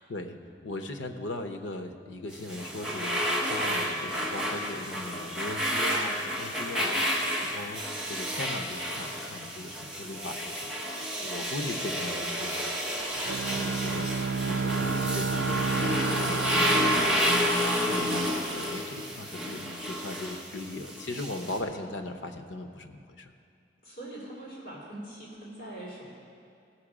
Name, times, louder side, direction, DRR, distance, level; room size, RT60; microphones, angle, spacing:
voice 1, 0.6-3.1 3.4-10.7 11.2-12.6 13.2-14.1 14.4-17.2 17.6-23.3, left 2 dB, 85° left, 6 dB, 0.8 m, -39 dB
sound 1, 2.3-21.6, equal, 5° right, 0.9 m, -30 dB
Bowed string instrument, 13.3-18.3, right 5 dB, 65° right, 0.5 m, -31 dB
voice 2, 23.8-26.1, right 1 dB, 50° left, -6 dB, 3.1 m, -42 dB
16.0 x 6.1 x 4.9 m, 2.4 s
head